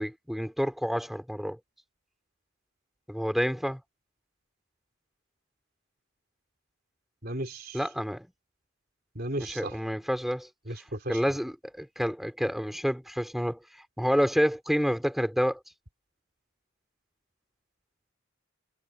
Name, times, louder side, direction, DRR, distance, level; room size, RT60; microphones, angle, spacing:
voice 1, 0.0-1.6 3.1-3.8 7.7-8.3 9.4-10.5 11.1-13.6 14.0-15.6, equal, ahead, 4.0 m, -28 dB
voice 2, 7.2-7.8 9.1-9.8 10.7-11.2, right 1 dB, 45° right, 3.5 m, -35 dB
head